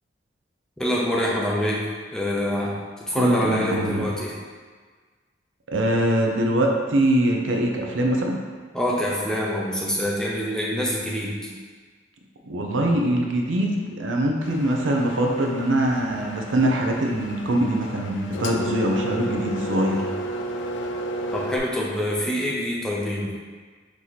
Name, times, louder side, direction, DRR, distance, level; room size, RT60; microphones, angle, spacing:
voice 1, 0.8-1.8 2.1-2.7 3.1-4.3 8.7-11.4 21.3-23.3, equal, 5° left, -4 dB, 0.5 m, -25 dB
voice 2, 3.1-4.1 5.7-8.4 12.5-20.0, right 1 dB, 80° right, 0 dB, 0.6 m, -23 dB
Engine, 14.4-21.6, right 1 dB, 70° left, 0.4 m, -33 dB
4.7 x 2.8 x 4.0 m, 1.5 s
head